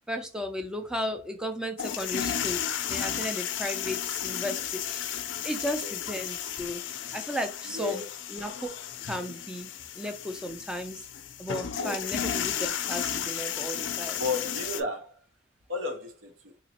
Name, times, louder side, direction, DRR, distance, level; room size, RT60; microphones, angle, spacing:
voice 1, 0.1-5.0 5.4-6.8 7.1-8.0 8.3-8.7 9.0-11.0 11.4-14.2, equal, 5° right, 0.4 m, -35 dB
sound 1, 1.8-14.8, left 9 dB, 65° left, 0.4 m, -33 dB
voice 2, 7.7-8.1 11.7-12.0 14.1-15.1 15.7-16.5, left 3 dB, 75° right, 0.7 m, -33 dB
3.9 x 2.9 x 2.9 m
head